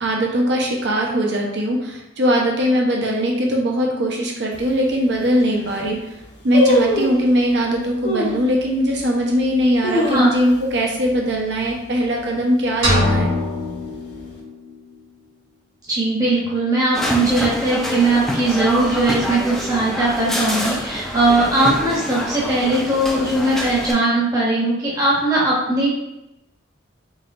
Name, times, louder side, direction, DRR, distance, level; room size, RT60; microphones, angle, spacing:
voice 1, 0.0-6.1 6.4-13.3, equal, 65° right, -1 dB, 0.8 m, -20 dB
sound 1, 4.5-4.6 5.2-5.3 5.5-5.9 6.5-7.3 8.0-8.4 9.0-9.1 9.6-10.7 11.0-11.1 11.4-11.8 12.2-12.6 13.2-14.0 14.2-14.3, left 1 dB, 75° left, 1.2 m, -21 dB
sound 2, 12.8-14.8, left 1 dB, 90° right, 1.4 m, -22 dB
voice 2, 15.9-25.9, right 2 dB, 20° right, -7 dB, 0.9 m, -19 dB
sound 3, 16.9-23.9, equal, ahead, 0.4 m, -26 dB
4.1 x 3.8 x 2.5 m, 0.89 s
head